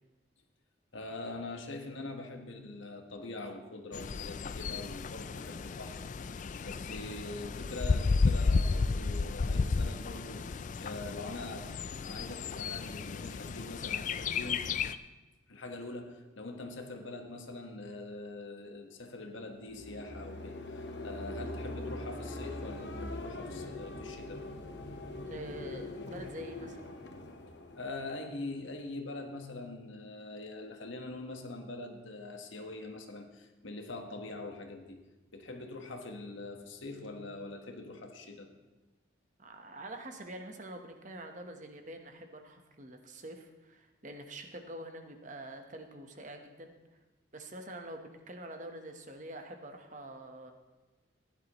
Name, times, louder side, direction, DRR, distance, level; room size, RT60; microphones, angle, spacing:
voice 1, 0.9-14.7 15.5-24.5 27.7-35.0 35.3-38.5, left 2 dB, 75° left, 4 dB, 1.4 m, -43 dB
Bird, 3.9-15.0, left 4 dB, 40° left, 0.3 m, -33 dB
sound 1, 19.6-28.6, left 2 dB, 60° left, 1.0 m, -42 dB
voice 2, 25.2-26.9 39.4-46.7 47.3-50.5, right 1 dB, 40° right, 5 dB, 1.1 m, -46 dB
16.0 x 11.0 x 3.0 m, 1.2 s
head